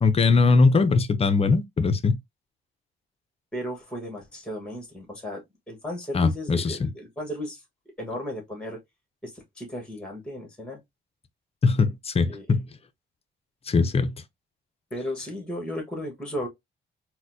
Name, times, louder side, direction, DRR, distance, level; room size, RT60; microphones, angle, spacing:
voice 1, 0.0-2.2 6.1-6.9 11.6-12.7 13.7-14.1, left 4 dB, 30° left, 0.5 m, -21 dB
voice 2, 3.5-5.4 5.7-7.6 8.0-8.8 9.2-10.8 12.3-12.4 14.9-16.5, equal, 5° left, 1.3 m, -35 dB
4.1 x 2.1 x 2.6 m
cardioid pair, 90°, 20 cm